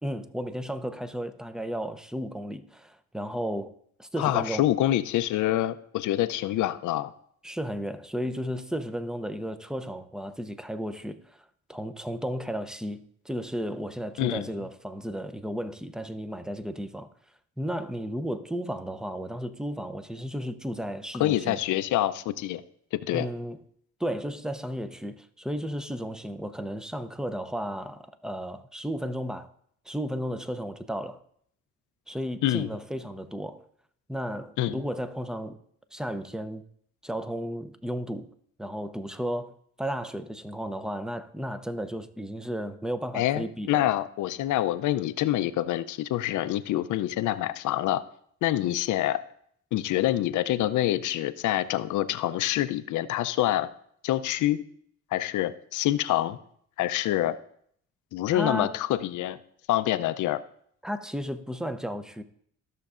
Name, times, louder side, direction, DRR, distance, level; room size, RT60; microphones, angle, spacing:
voice 1, 0.0-4.6 7.4-17.1 17.6-21.6 23.1-23.6 24.0-29.5 29.9-31.2 32.1-33.6 34.1-35.6 35.9-36.6 37.0-38.3 38.6-43.9 58.3-58.8 60.8-62.2, equal, ahead, 0.5 m, -34 dB
voice 2, 4.2-7.1 14.2-14.5 21.2-22.6 22.9-23.3 32.4-32.7 34.6-34.7 43.1-48.0 48.4-49.2 49.7-53.7 54.0-54.6 55.1-56.4 56.8-57.4 58.1-59.4 59.7-60.4, left 14 dB, 80° left, 0.5 m, -26 dB
14.0 x 6.6 x 2.5 m
cardioid pair, 90°, 30 cm